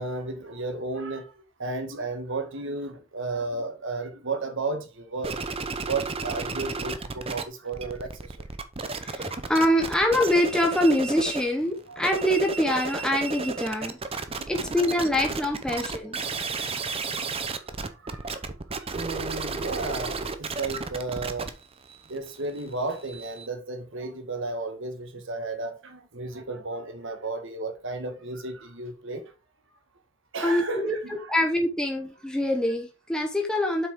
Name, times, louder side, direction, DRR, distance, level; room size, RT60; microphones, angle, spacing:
voice 1, 0.0-5.4 5.8-8.5 11.9-12.0 14.2-14.9 16.3-16.8 17.1-21.5 22.1-29.3 30.3-31.3, right 3 dB, 60° right, 1.7 m, -34 dB
sound 1, 5.2-7.4 7.7-11.5 11.9-23.5, right 4 dB, 30° right, 0.7 m, -33 dB
voice 2, 9.0-14.0 14.5-16.2 30.4-30.9 31.3-33.9, left 1 dB, 5° left, 1.0 m, -24 dB
7.8 x 6.1 x 3.7 m
head